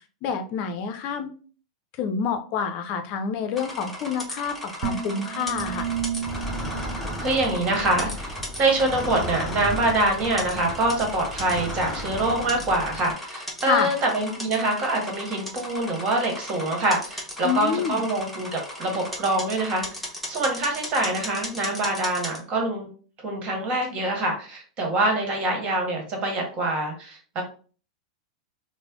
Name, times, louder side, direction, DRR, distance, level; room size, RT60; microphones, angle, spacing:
voice 1, 0.2-1.3 2.0-5.9 13.6-13.9 17.4-18.0, left 6 dB, 45° left, 7 dB, 0.5 m, -27 dB
sound 1, 3.5-22.4, left 1 dB, ahead, 1.1 m, -37 dB
sound 2, 4.8-8.2, right 8 dB, 55° right, 0.6 m, -33 dB
sound 3, 5.5-13.1, equal, 15° left, 0.8 m, -35 dB
voice 2, 7.2-19.8 20.3-22.9 23.2-27.4, right 2 dB, 40° right, 2 dB, 1.3 m, -25 dB
3.2 x 2.0 x 3.6 m, 0.40 s
hypercardioid pair, 100°, 4 cm